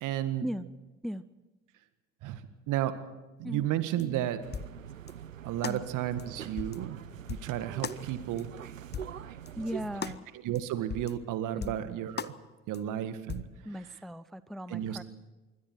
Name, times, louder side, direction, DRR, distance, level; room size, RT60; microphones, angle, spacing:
voice 1, 0.0-0.5 2.2-2.4 2.7-3.0 3.4-4.4 5.4-7.0 7.3-8.5 10.4-12.3 12.7-13.5 14.7-15.0, right 12 dB, 50° right, 11 dB, 1.9 m, -32 dB
sound 1, 4.0-4.1 4.5-4.7 5.1-5.2 5.6-5.8 6.2-6.3 6.6-6.8 7.3-7.5 7.8-8.0 8.4-8.5 8.9-9.2 9.5-9.6 10.0-10.2 10.6-10.7 10.9-11.1 11.6-11.8 12.2-12.3 12.7-12.8 13.3-13.5, left 7 dB, 25° left, 1.0 m, -38 dB
sound 2, 4.4-10.2, right 9 dB, 85° right, 0.6 m, -44 dB
voice 2, 9.6-10.3 11.6-11.7 13.6-15.0, equal, ahead, 16 dB, 0.6 m, -37 dB
26.5 x 24.0 x 4.6 m, 1.2 s
figure-of-eight pair, 55°, 38 cm